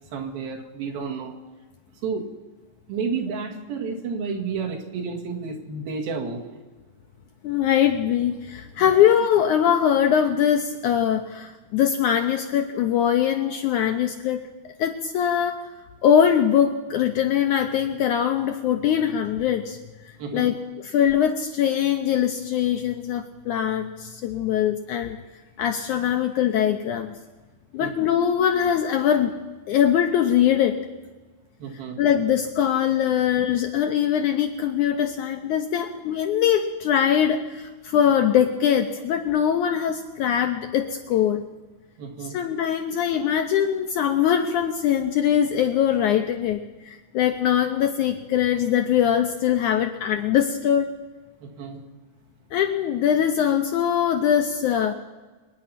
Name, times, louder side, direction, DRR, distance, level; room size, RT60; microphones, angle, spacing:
voice 1, 0.1-1.3 2.0-2.3 2.9-6.4 8.8-9.0 20.2-20.5 27.8-27.9 31.6-32.0 42.0-42.4 51.4-51.8, right 5 dB, 80° right, 0 dB, 3.8 m, -31 dB
voice 2, 7.4-14.4 14.8-15.6 16.0-19.8 20.1-20.5 20.8-25.2 25.6-27.1 27.7-29.3 29.7-30.8 32.0-41.4 42.2-50.9 52.5-54.9, left 9 dB, 80° left, 6 dB, 1.8 m, -22 dB
25.0 x 9.7 x 5.8 m, 1.3 s
omnidirectional pair, 4.2 m